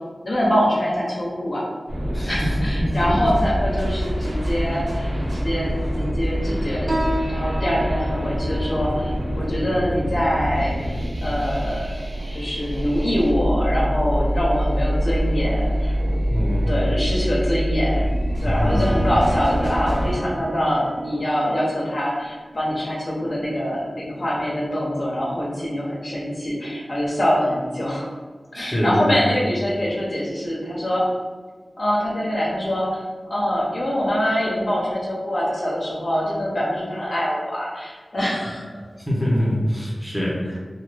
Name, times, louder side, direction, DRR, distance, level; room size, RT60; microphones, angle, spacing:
voice 1, 0.2-1.6 2.2-6.9 7.3-10.9 11.2-12.0 12.3-16.0 16.7-28.1 28.5-31.1 31.8-38.7, equal, 60° left, -5 dB, 0.7 m, -24 dB
sound 1, 1.9-20.2, equal, 80° right, 0.7 m, -25 dB
voice 2, 2.1-2.5 2.8-3.3 16.3-16.7 18.4-19.0 28.5-29.1 39.0-40.6, equal, 10° left, -5 dB, 0.9 m, -24 dB
Piano, 6.9-13.9, right 1 dB, 50° right, 0.5 m, -34 dB
Bowed string instrument, 18.5-22.5, right 2 dB, 40° left, 1.0 m, -36 dB
2.5 x 2.4 x 3.3 m, 1.4 s
wide cardioid pair, 50°, 0 cm